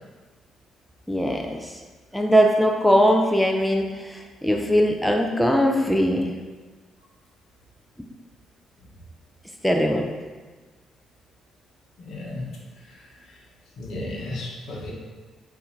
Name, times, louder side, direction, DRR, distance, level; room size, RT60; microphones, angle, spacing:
voice 1, 1.1-1.8 2.1-6.3 9.6-10.1, equal, 5° left, 2 dB, 0.5 m, -21 dB
voice 2, 12.0-12.4 13.8-14.9, left 1 dB, 70° left, -3 dB, 0.9 m, -33 dB
4.1 x 2.7 x 3.9 m, 1.3 s
hypercardioid pair, 50°, 0 cm